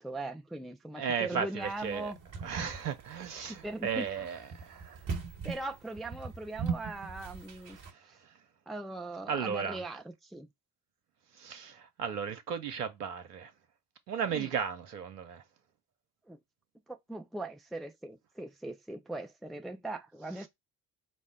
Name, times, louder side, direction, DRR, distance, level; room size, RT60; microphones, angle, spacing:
voice 1, 0.0-2.2 3.5-4.3 5.4-7.8 8.7-10.5 14.3-14.5 16.3-16.4 16.9-20.5, right 2 dB, ahead, 0.7 m, -40 dB
voice 2, 1.0-2.1 2.4-5.0 7.8-8.3 9.3-9.8 11.3-13.5 14.1-15.4, right 7 dB, 85° right, 0.7 m, -35 dB
sound 1, 1.6-7.9, right 5 dB, 45° right, 1.3 m, -39 dB
5.2 x 2.1 x 3.5 m
figure-of-eight pair, 50°, 45 cm